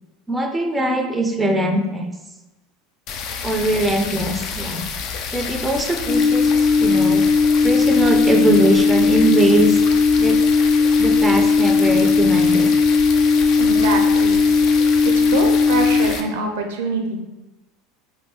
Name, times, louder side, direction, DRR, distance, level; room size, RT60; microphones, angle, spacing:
voice 1, 0.3-2.1 3.4-4.9 5.3-7.2 7.6-9.8 10.2-10.4 11.0-12.7, right 1 dB, 10° right, 4 dB, 0.4 m, -21 dB
sound 1, 3.1-16.2, left 6 dB, 50° left, 0.4 m, -30 dB
sound 2, 6.1-16.1, left 4 dB, 20° left, 0.7 m, -16 dB
voice 2, 13.6-14.4 15.3-17.2, right 3 dB, 75° right, 3 dB, 0.5 m, -25 dB
3.2 x 2.6 x 2.9 m, 1.0 s
hypercardioid pair, 85°, 0 cm